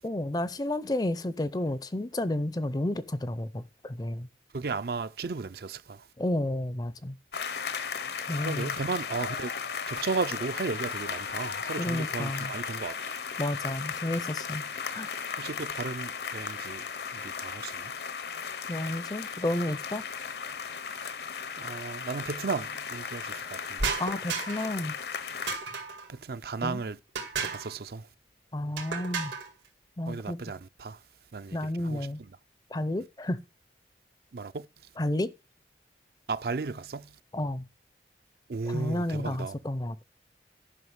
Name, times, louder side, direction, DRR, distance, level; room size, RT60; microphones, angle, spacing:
voice 1, 0.0-4.3 6.2-7.2 8.3-8.8 11.8-12.5 13.4-14.6 14.9-15.1 18.7-20.0 24.0-24.9 26.6-26.8 28.5-29.3 30.0-30.4 31.5-32.2 32.7-33.4 35.0-35.3 37.3-37.7 38.6-40.0, left 1 dB, 20° left, 0.5 m, -31 dB
voice 2, 4.5-6.1 8.4-9.5 9.9-13.2 15.4-17.9 21.6-24.0 26.1-27.0 27.4-28.1 30.0-31.0 31.3-32.1 34.3-34.7 36.3-37.2 38.5-39.5, right 4 dB, 55° right, 0.5 m, -35 dB
sound 1, 7.3-25.6, left 6 dB, 65° left, 0.8 m, -36 dB
sound 2, 23.8-24.8 25.5-26.1 27.1-27.7 28.8-29.5, right 5 dB, 90° right, 2.1 m, -33 dB
11.0 x 5.6 x 7.2 m
head